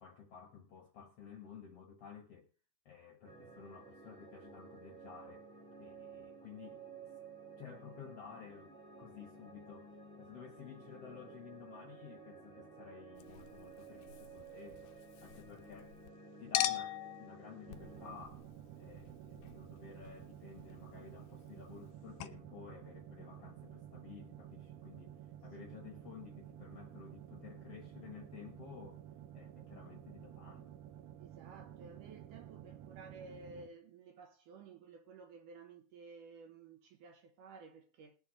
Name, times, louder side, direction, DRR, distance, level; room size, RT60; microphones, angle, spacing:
voice 1, 0.0-2.5 2.8-5.5 5.8-7.1 7.6-14.9 15.2-16.0 16.4-18.5 18.8-29.0 29.3-30.7, left 7 dB, 60° left, 1.6 m, -53 dB
sound 1, 3.2-18.2, right 4 dB, 15° right, 2.4 m, -54 dB
Chink clink, 13.2-16.1 16.5-21.9 22.2-22.3, left 13 dB, 80° left, 1.8 m, -43 dB
sound 2, 17.7-33.7, right 11 dB, 85° right, 1.8 m, -52 dB
voice 2, 31.2-38.2, right 4 dB, 70° right, 2.1 m, -54 dB
21.0 x 7.0 x 3.1 m
omnidirectional pair, 4.6 m